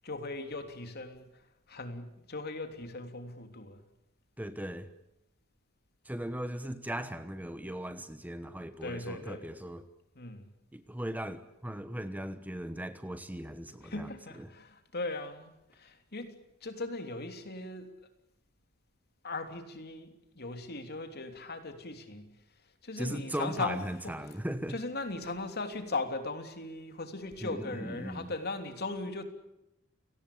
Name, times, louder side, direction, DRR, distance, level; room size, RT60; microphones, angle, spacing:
voice 1, 0.0-3.8 8.8-9.4 10.1-10.5 13.8-17.9 19.2-20.1 20.3-22.3 22.8-24.3 24.7-29.2, left 3 dB, 50° left, 7 dB, 3.3 m, -38 dB
voice 2, 4.4-4.9 6.0-9.9 10.7-14.1 14.4-14.5 23.0-24.8 27.4-28.3, right 1 dB, 10° right, 11 dB, 1.1 m, -38 dB
29.5 x 18.5 x 8.7 m, 0.87 s
head